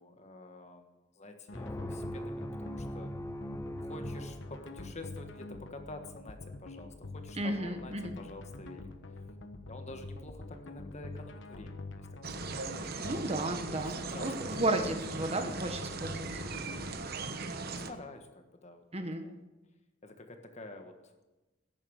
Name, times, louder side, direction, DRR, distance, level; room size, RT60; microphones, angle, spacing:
voice 1, 0.0-3.1 3.8-9.3 9.7-12.2 12.6-13.2 13.7-14.3 14.7-15.8 17.7-19.4 20.0-21.3, left 2 dB, 35° left, 6 dB, 1.5 m, -49 dB
sound 1, 1.5-16.9, left 2 dB, 65° left, 1.1 m, -46 dB
sound 2, 1.5-5.1, equal, 15° left, 0.6 m, -41 dB
voice 2, 7.4-8.1 12.5-12.6 13.0-16.4 18.9-19.2, right 2 dB, 30° right, 6 dB, 1.2 m, -33 dB
sound 3, 12.2-17.9, right 3 dB, 50° right, 1.1 m, -39 dB
14.5 x 11.0 x 6.4 m, 1.1 s
head